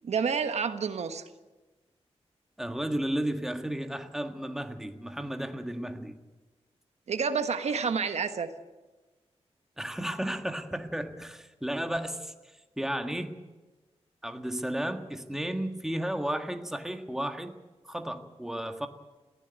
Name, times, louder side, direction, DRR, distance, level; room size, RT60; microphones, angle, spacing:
voice 1, 0.0-1.2 7.1-8.5, right 6 dB, 80° right, 9 dB, 1.3 m, -29 dB
voice 2, 2.6-6.2 9.8-13.4 14.2-17.5 17.8-18.9, right 1 dB, 5° right, 6 dB, 1.7 m, -33 dB
19.5 x 15.5 x 9.3 m, 1.2 s
wide cardioid pair, 105°, 11 cm